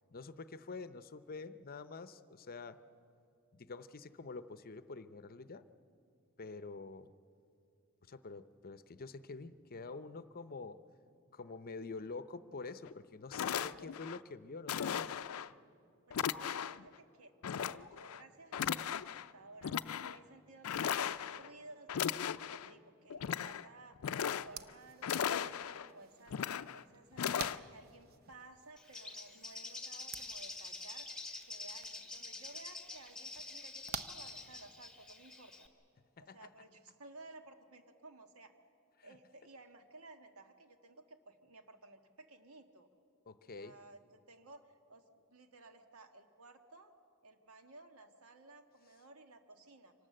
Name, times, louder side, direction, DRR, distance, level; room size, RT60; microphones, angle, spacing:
voice 1, 0.1-2.8 3.5-5.7 6.4-7.1 8.1-10.8 11.3-15.2 36.2-36.4 39.0-39.2 43.3-43.8, left 3 dB, 45° left, 13 dB, 0.7 m, -47 dB
sound 1, 12.9-13.0 13.3-14.2 14.7-15.5 16.1-16.8 17.4-18.2 18.5-19.3 19.6-20.2 20.6-21.5 21.9-22.7 23.1-23.6 24.0-24.7 25.0-25.9 26.3-26.8 27.2-27.6, left 8 dB, 80° left, 0.4 m, -37 dB
voice 2, 16.1-19.8 20.1-21.1 21.3-26.4 26.7-31.1 31.4-35.7 36.2-38.5 39.0-42.9 43.5-46.9 47.2-49.9, right 2 dB, 85° right, 6 dB, 1.6 m, -57 dB
sound 2, 24.4-35.0, right 6 dB, 45° right, 0.8 m, -52 dB
Bird, 28.8-35.7, left 2 dB, 5° left, 1.4 m, -47 dB
25.0 x 18.5 x 7.7 m, 2.5 s
head